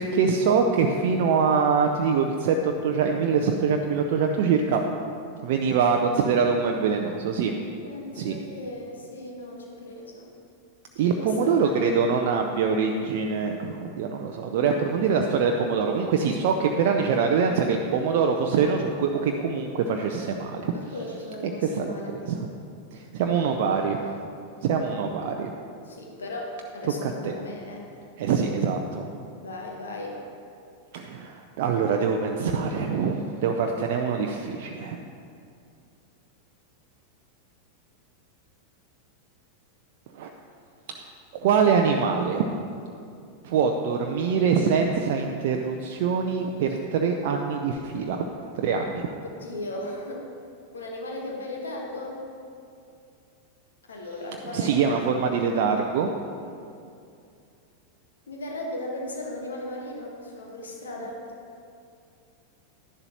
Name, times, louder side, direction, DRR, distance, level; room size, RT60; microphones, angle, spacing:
voice 1, 0.0-4.8 5.4-7.5 8.1-8.4 11.0-20.7 21.8-21.9 22.3-22.5 22.9-24.0 24.6-25.5 27.0-27.4 28.2-29.1 30.9-35.0 40.1-40.3 40.9-41.0 41.3-42.4 43.4-48.3 48.5-49.1 54.5-56.2, right 5 dB, 50° right, 3 dB, 0.5 m, -24 dB
voice 2, 7.8-10.3 11.0-11.9 20.7-22.2 25.8-27.9 29.4-30.2 49.2-50.2 50.7-52.2 53.9-55.2 58.3-61.2, left 1 dB, 70° left, -1 dB, 1.4 m, -37 dB
11.0 x 10.5 x 2.9 m, 2.5 s
figure-of-eight pair, 90°, 0 cm